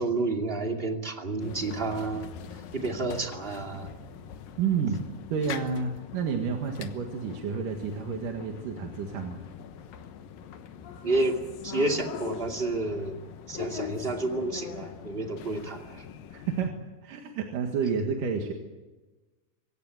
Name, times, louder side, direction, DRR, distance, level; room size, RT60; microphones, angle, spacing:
voice 1, 0.0-2.3 2.7-3.9 11.0-13.2 13.5-16.0, right 2 dB, 20° right, 3 dB, 2.2 m, -30 dB
sound 1, 1.4-16.7, left 9 dB, 85° left, 3.0 m, -42 dB
voice 2, 4.6-5.0 5.3-9.4 16.3-16.8 17.0-18.5, right 6 dB, 75° right, 3 dB, 3.2 m, -30 dB
26.0 x 16.5 x 9.4 m, 1.2 s
omnidirectional pair, 3.9 m